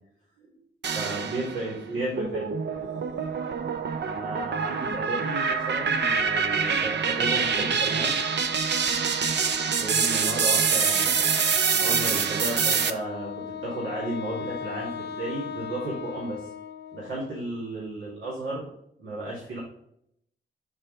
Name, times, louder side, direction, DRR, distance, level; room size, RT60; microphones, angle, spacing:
sound 1, 0.8-1.7 2.2-12.9, right 5 dB, 60° right, 0.6 m, -25 dB
voice 1, 0.9-2.5 2.8-3.1 4.0-8.2 9.8-16.5 16.9-18.7 19.0-19.6, right 2 dB, 85° right, -7 dB, 2.1 m, -34 dB
Wind instrument woodwind instrument, 12.9-17.5, left 8 dB, 60° left, 0.7 m, -37 dB
5.5 x 4.7 x 3.8 m, 0.72 s
supercardioid pair, 45°, 20 cm